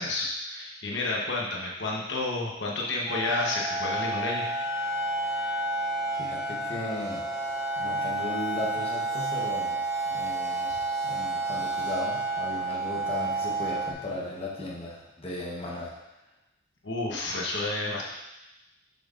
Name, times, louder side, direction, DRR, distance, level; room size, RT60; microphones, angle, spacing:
voice 1, 0.0-4.5 10.7-10.8 16.8-18.1, left 2 dB, 65° left, -2 dB, 1.0 m, -30 dB
sound 1, 3.1-13.9, right 2 dB, 15° right, 0.7 m, -30 dB
voice 2, 6.1-7.2 7.8-9.8 10.1-10.7 11.0-15.9, left 2 dB, 30° left, -5 dB, 1.1 m, -36 dB
7.6 x 5.4 x 2.5 m, 0.96 s
head